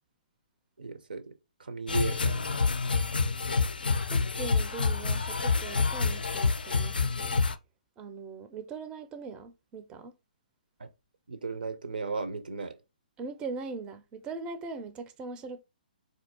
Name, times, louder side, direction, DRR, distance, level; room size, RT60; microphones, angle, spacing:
voice 1, 0.8-1.3 1.6-2.8 10.8-10.9 11.3-12.8, right 4 dB, 75° right, 0.6 m, -36 dB
sound 1, 1.9-7.5, left 4 dB, 80° left, 0.3 m, -27 dB
voice 2, 4.1-7.4 8.0-10.1 13.2-15.6, right 4 dB, 20° right, 0.4 m, -40 dB
4.0 x 2.6 x 2.7 m
figure-of-eight pair, 130°, 5 cm